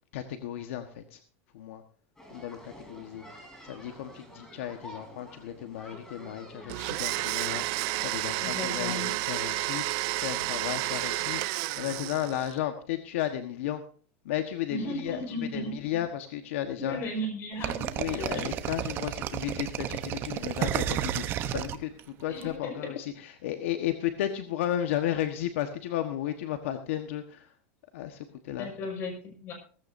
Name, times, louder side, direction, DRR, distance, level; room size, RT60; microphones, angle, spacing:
voice 1, 0.1-1.2 1.5-1.8 2.3-3.2 3.6-13.8 14.2-17.0 18.0-27.5 27.9-28.8, left 11 dB, 75° left, 7 dB, 1.3 m, -34 dB
sound 1, 2.2-8.4, equal, 10° left, 3.5 m, -49 dB
Domestic sounds home sounds, 6.7-12.5, right 20 dB, 50° right, 0.6 m, -31 dB
voice 2, 8.4-9.2 14.7-15.7 16.8-18.4 22.3-22.9 28.6-29.5, left 1 dB, 35° left, 4 dB, 5.3 m, -36 dB
sound 2, 17.6-22.4, right 11 dB, 35° right, 0.9 m, -31 dB
16.5 x 15.0 x 2.7 m, 0.43 s
supercardioid pair, 160°, 7 cm